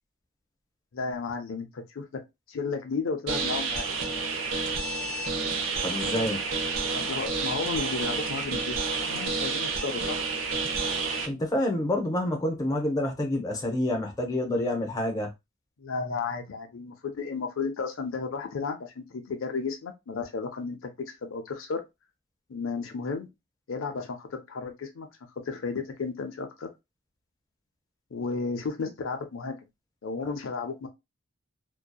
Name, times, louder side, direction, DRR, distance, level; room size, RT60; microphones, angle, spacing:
voice 1, 0.9-2.0 2.5-3.9 6.9-10.2 15.8-20.9 21.2-21.8 22.5-23.3 23.7-25.1 25.4-26.7 28.1-29.6 30.0-30.9, left 4 dB, 75° left, 0.5 m, -33 dB
sound 1, 3.3-11.3, right 4 dB, 75° right, 0.6 m, -30 dB
voice 2, 5.8-6.4 11.3-15.3, left 1 dB, 20° left, 0.7 m, -28 dB
2.7 x 2.2 x 2.2 m
head